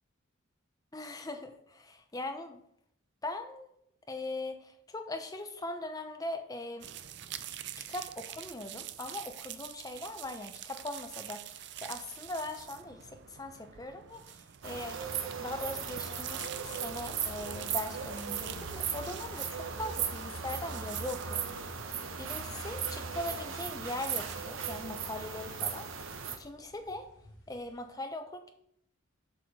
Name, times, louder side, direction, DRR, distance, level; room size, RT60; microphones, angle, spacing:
voice 1, 0.9-2.6 3.2-3.7 4.1-6.9 7.8-21.4 21.8-26.1 26.4-27.1 27.5-28.5, left 2 dB, 20° left, 6 dB, 0.8 m, -40 dB
sound 1, 6.8-24.4, right 11 dB, 55° right, 0.5 m, -47 dB
sound 2, 14.6-26.4, right 7 dB, 75° right, 1.0 m, -37 dB
sound 3, 17.0-27.8, left 1 dB, 70° left, 2.6 m, -58 dB
7.4 x 5.1 x 6.3 m, 0.71 s
head